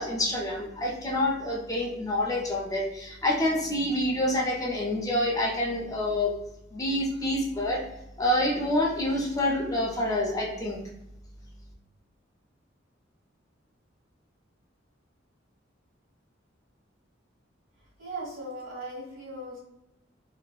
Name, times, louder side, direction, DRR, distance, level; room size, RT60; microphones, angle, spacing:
voice 1, 0.0-6.3 6.7-7.8 8.2-10.8, left 1 dB, 20° left, -1 dB, 0.4 m, -27 dB
voice 2, 18.0-19.6, right 1 dB, 75° right, -4 dB, 1.3 m, -38 dB
2.6 x 2.1 x 2.2 m, 0.88 s
head